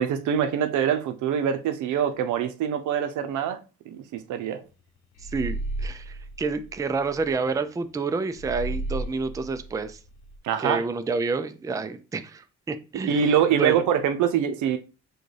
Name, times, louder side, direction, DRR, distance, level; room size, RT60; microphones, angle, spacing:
voice 1, 0.0-4.6 10.4-10.8 12.9-14.8, right 8 dB, 80° right, 0.6 m, -24 dB
sound 1, 5.2-7.3 8.3-10.4, right 2 dB, 70° left, 0.9 m, -34 dB
voice 2, 5.2-10.0 10.6-13.2 13.6-13.8, right 4 dB, 10° right, 0.4 m, -29 dB
6.2 x 2.3 x 3.3 m
cardioid pair, 90°, 30 cm